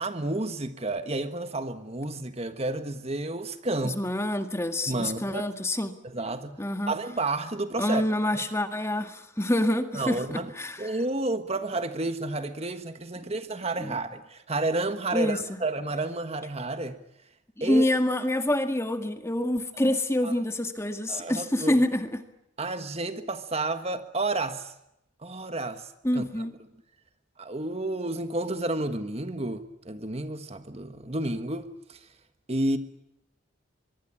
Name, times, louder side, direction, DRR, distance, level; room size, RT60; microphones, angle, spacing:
voice 1, 0.0-4.0 4.9-5.5 6.0-6.6 6.9-8.0 8.3-8.4 9.9-10.5 10.8-17.0 17.6-17.9 19.8-20.0 20.2-20.3 21.1-21.8 22.6-24.7 25.2-26.5 27.4-32.0 32.5-32.8, right 2 dB, 35° right, 9 dB, 1.5 m, -31 dB
voice 2, 3.8-5.9 6.6-7.0 7.8-11.0 13.8-14.0 15.1-15.6 17.6-22.2 26.0-26.5, left 1 dB, 15° left, 7 dB, 1.8 m, -27 dB
24.0 x 23.5 x 8.7 m, 0.82 s
head